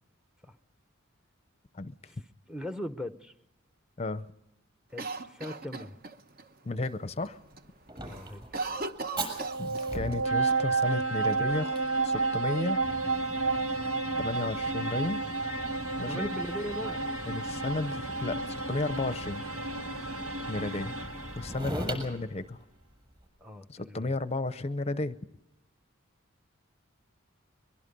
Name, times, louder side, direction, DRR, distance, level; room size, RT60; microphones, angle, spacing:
voice 1, 2.5-3.3 4.9-6.0 8.0-8.4 16.0-17.0 21.7-21.9 23.4-24.2, left 1 dB, 5° right, 10 dB, 0.7 m, -39 dB
Cough, 5.0-6.5 6.8-6.9 7.3-7.7 8.0-10.2 10.5-10.6 11.3-12.1, right 3 dB, 45° right, 1.1 m, -38 dB
voice 2, 6.6-7.4 9.6-12.8 14.2-15.3 16.0-16.3 17.3-19.4 20.5-21.0 21.3-22.6 23.7-25.2, left 2 dB, 30° left, 13 dB, 0.6 m, -33 dB
Fire, 7.1-23.3, right 1 dB, 25° right, 6.9 m, -43 dB
sound 1, 9.1-21.9, right 3 dB, 85° right, 2.0 m, -31 dB
23.0 x 22.5 x 5.3 m, 0.88 s
head